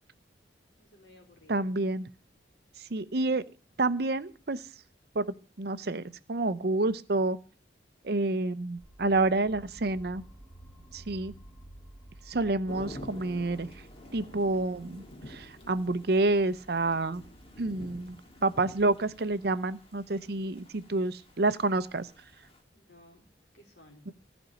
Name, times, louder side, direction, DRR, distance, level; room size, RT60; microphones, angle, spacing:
voice 1, 0.8-1.7 22.7-23.3 23.5-24.1, left 1 dB, 65° left, 2 dB, 3.5 m, -57 dB
voice 2, 1.5-2.1 2.8-3.4 3.8-4.6 5.1-7.4 8.0-10.2 10.9-11.3 12.3-13.7 14.1-17.2 17.6-22.1 24.1-24.2, right 2 dB, 60° right, 14 dB, 0.7 m, -29 dB
sound 1, 8.8-20.7, right 1 dB, 10° left, 2.2 m, -54 dB
Thunder / Rain, 12.7-22.6, left 1 dB, 30° left, 2.0 m, -49 dB
15.0 x 5.2 x 9.0 m, 0.39 s
head